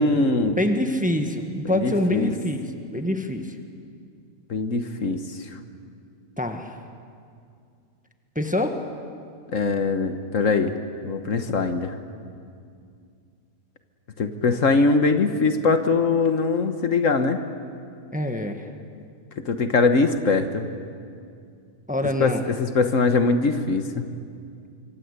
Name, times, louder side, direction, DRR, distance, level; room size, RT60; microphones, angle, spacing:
voice 1, 0.0-0.6 1.7-2.3 4.5-5.5 9.5-10.7 11.0-11.9 14.2-17.4 19.4-20.7 22.2-24.0, left 3 dB, 60° left, 8 dB, 1.5 m, -22 dB
voice 2, 0.6-3.5 6.4-6.8 8.3-8.8 18.1-18.6 21.9-22.4, left 1 dB, 5° right, 5 dB, 1.4 m, -25 dB
26.0 x 25.0 x 8.2 m, 2.3 s
omnidirectional pair, 1.5 m